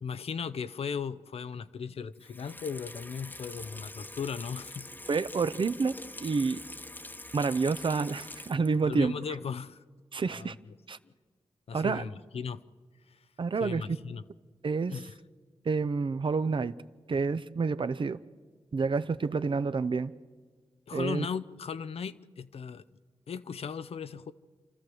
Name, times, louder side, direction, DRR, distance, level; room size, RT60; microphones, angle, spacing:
voice 1, 0.0-4.9 8.8-9.8 10.3-10.7 11.7-12.6 13.1-13.2 13.6-14.3 14.9-15.1 20.9-22.8 23.3-24.3, left 6 dB, 75° left, 0.7 m, -37 dB
Water tap faucet / Sink (filling or washing), 2.2-8.9 9.2-9.3, left 1 dB, 20° left, 1.1 m, -45 dB
voice 2, 5.1-5.9 6.2-6.6 7.3-9.2 10.1-10.6 10.9-11.0 11.7-12.0 13.4-13.8 14.6-14.9 15.6-16.7 17.1-18.2 18.7-20.1 20.9-21.3, right 4 dB, 55° right, 0.7 m, -28 dB
28.5 x 13.0 x 7.8 m
cardioid pair, 50°, 10 cm